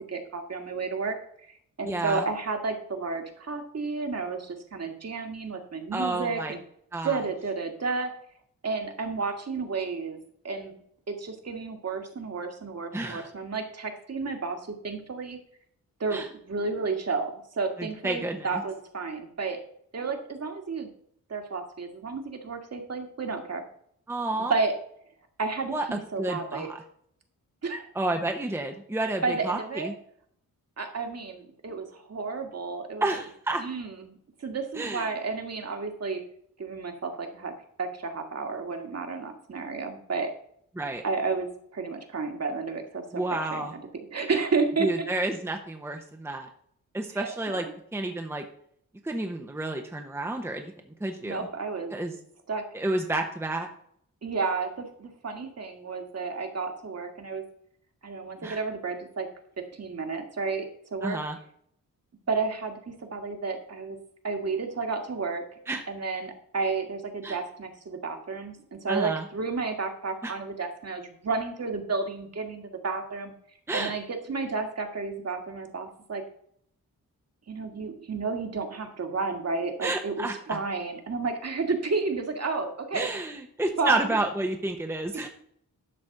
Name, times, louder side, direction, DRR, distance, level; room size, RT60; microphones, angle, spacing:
voice 1, 0.1-1.2 1.5-6.6 7.0-8.1 8.6-10.2 10.4-10.8 11.1-15.4 16.0-19.6 19.9-20.9 21.3-23.6 24.5-24.7 25.4-26.7 27.6-27.9 29.2-29.9 30.8-33.1 33.6-36.2 36.6-37.5 37.8-40.3 41.0-43.8 44.1-45.1 47.1-47.7 51.2-51.9 52.5-52.6 54.2-57.4 58.0-59.3 59.6-61.2 62.3-64.0 64.2-65.4 65.9-73.3 73.7-76.2 77.5-83.1 83.8-84.0, right 4 dB, 45° right, 4 dB, 1.8 m, -31 dB
voice 2, 1.8-2.2 5.9-6.5 6.9-7.2 12.9-13.3 16.1-16.3 17.8-18.6 24.1-24.5 25.7-26.8 27.9-29.9 33.0-33.6 34.7-35.1 40.8-41.0 43.1-43.7 44.8-46.5 46.9-47.7 47.9-48.4 49.0-50.7 51.0-51.5 51.9-52.1 52.7-53.7 58.4-58.6 61.0-61.4 65.7-65.8 67.2-67.4 68.9-69.3 70.2-70.3 73.7-73.9 79.8-80.6 82.9-85.3, right 2 dB, 5° right, 4 dB, 0.9 m, -30 dB
12.0 x 4.2 x 7.7 m, 0.66 s
wide cardioid pair, 160°, 34 cm